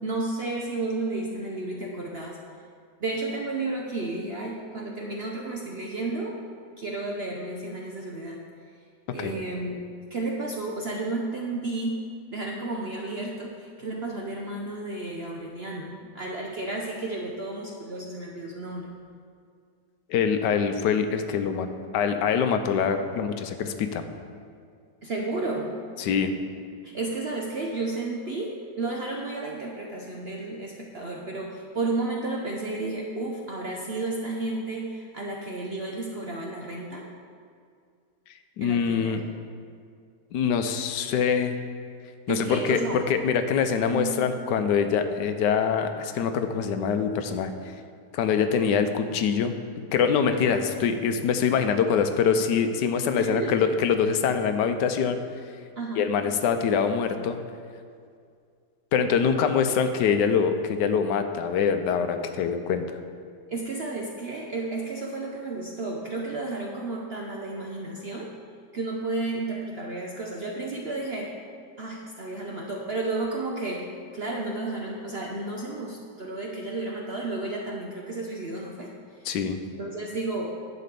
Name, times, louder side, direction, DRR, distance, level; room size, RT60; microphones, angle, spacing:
voice 1, 0.0-2.4 3.0-6.4 6.8-8.4 9.1-9.8 10.1-12.0 12.3-18.9 25.0-25.8 26.8-37.1 38.6-39.2 42.3-43.0 43.9-44.1 53.0-53.6 55.8-56.1 63.5-68.3 68.7-71.3 71.8-78.9 79.7-80.6, right 2 dB, 55° right, -1 dB, 0.7 m, -32 dB
voice 2, 20.1-21.7 21.9-24.1 26.0-26.3 38.6-39.2 40.3-41.5 42.3-47.5 48.1-49.5 49.9-55.2 56.0-57.4 58.9-62.8 79.2-79.6, left 6 dB, 80° left, 8 dB, 1.2 m, -24 dB
11.0 x 4.2 x 6.7 m, 2.2 s
omnidirectional pair, 1.9 m